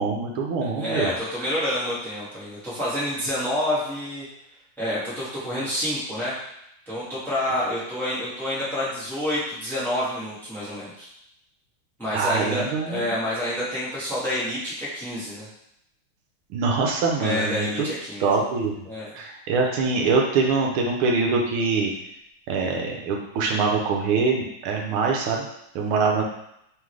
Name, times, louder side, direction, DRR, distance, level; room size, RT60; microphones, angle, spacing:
voice 1, 0.0-1.1 12.1-13.1 16.5-17.9 18.2-18.8 19.1-21.9 22.5-25.5 25.7-26.2, right 4 dB, 80° right, 0 dB, 1.5 m, -24 dB
voice 2, 0.7-4.3 4.8-6.3 6.9-11.1 12.0-15.5 17.2-18.4 18.8-19.1, left 1 dB, ahead, -9 dB, 1.1 m, -28 dB
3.8 x 3.6 x 3.1 m, 0.78 s
omnidirectional pair, 2.4 m